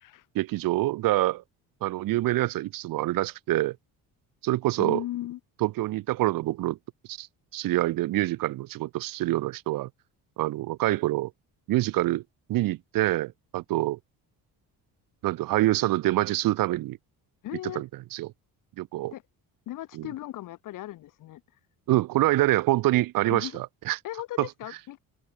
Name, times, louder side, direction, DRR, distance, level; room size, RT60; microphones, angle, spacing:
voice 1, 0.3-1.4 1.8-3.8 4.4-5.0 5.6-6.8 7.1-7.3 7.5-9.9 10.4-11.3 11.7-12.2 12.5-14.0 15.2-17.0 17.8-18.3 18.8-19.1 20.0-20.1 21.9-24.0 24.4-24.5, right 16 dB, 65° right, 0.8 m, -26 dB
voice 2, 4.8-5.4 17.4-17.8 19.1-19.2 19.7-21.4 23.2-23.6 24.0-25.0, left 14 dB, 60° left, 1.0 m, -37 dB
cardioid pair, 145°, 37 cm